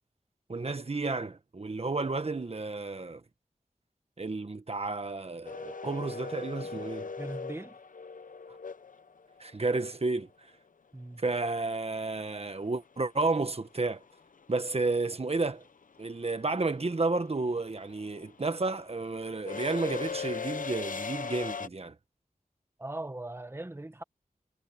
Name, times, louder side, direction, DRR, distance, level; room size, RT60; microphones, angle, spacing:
voice 1, 0.5-3.2 4.2-7.1 9.4-10.3 11.2-14.0 14.5-15.6 16.0-21.9, right 3 dB, 45° right, 1.4 m, -31 dB
sound 1, 5.4-9.5 11.9-12.0 13.3-13.6 13.9-21.7, left 5 dB, 70° left, 0.9 m, -39 dB
voice 2, 7.2-7.8 10.9-11.2 22.8-24.0, right 2 dB, 15° right, 1.4 m, -39 dB
wide cardioid pair, 75°, 14 cm